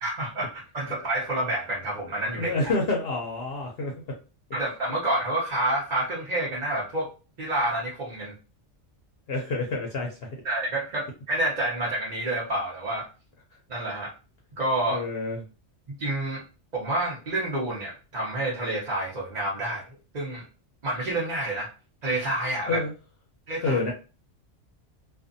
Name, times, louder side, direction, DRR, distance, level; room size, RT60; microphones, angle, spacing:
voice 1, 0.0-2.5 4.5-7.1 7.4-8.3 10.4-13.1 13.7-14.1 14.6-15.0 16.0-16.4 16.7-19.9 20.1-20.4 20.8-21.7 22.0-22.8 23.5-23.8, right 1 dB, 40° right, -6 dB, 0.8 m, -28 dB
voice 2, 2.4-4.2 9.3-10.3 14.9-15.4 22.7-22.9 23.6-23.9, left 3 dB, 60° left, -1 dB, 0.8 m, -28 dB
2.5 x 2.4 x 2.6 m, 0.33 s
omnidirectional pair, 1.2 m